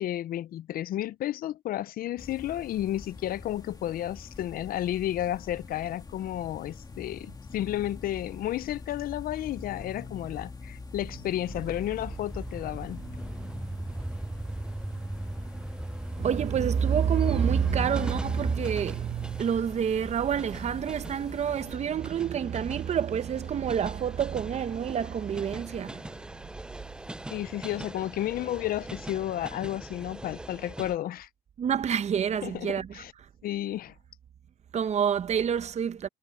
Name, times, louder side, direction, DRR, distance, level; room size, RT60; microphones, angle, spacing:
voice 1, 0.0-13.0 27.3-31.3 32.4-33.1 33.4-33.9, left 13 dB, 60° left, 0.6 m, -32 dB
sound 1, 2.2-21.8, left 4 dB, 25° left, 2.4 m, -45 dB
sound 2, 11.4-31.0, right 1 dB, 5° right, 0.4 m, -38 dB
voice 2, 16.2-26.2 31.6-33.0 34.7-36.1, right 8 dB, 40° right, 0.8 m, -28 dB
cardioid pair, 110°, 17 cm